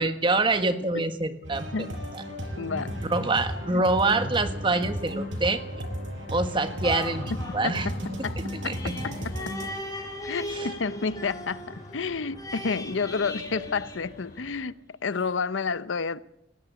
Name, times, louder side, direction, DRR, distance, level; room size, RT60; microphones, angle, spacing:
voice 1, 0.0-1.7 2.1-2.2 3.1-5.6 6.3-7.9 8.6-8.9 10.5-10.7, right 3 dB, 25° right, 1.6 m, -25 dB
sound 1, 1.4-9.7, equal, 80° right, 5.6 m, -34 dB
Traffic noise roadway noise, 2.2-14.6, left 1 dB, 40° left, 3.2 m, -49 dB
voice 2, 2.6-3.0 3.7-3.8 7.6-8.4 8.6-9.6 10.2-14.7 15.0-16.2, left 5 dB, 85° left, 0.7 m, -30 dB
sound 2, 6.8-14.7 15.2-15.3, left 1 dB, 20° left, 3.9 m, -39 dB
19.5 x 17.5 x 8.2 m
head